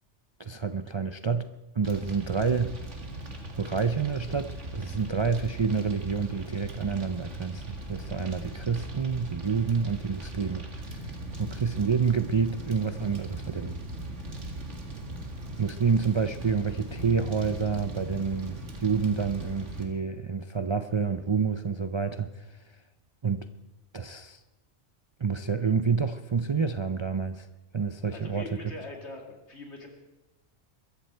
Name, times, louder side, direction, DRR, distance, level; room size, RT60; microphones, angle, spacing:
voice 1, 0.4-1.5 1.7-2.8 3.6-11.1 11.4-13.8 15.6-22.6 23.2-23.5 23.9-24.4 25.2-27.5 27.7-28.6, right 5 dB, 40° right, 10 dB, 0.4 m, -28 dB
Fire, 1.8-19.8, right 1 dB, 75° right, 2.4 m, -39 dB
voice 2, 28.1-29.9, left 2 dB, 65° left, 1 dB, 3.0 m, -42 dB
22.0 x 14.5 x 4.5 m, 1.1 s
omnidirectional pair, 1.2 m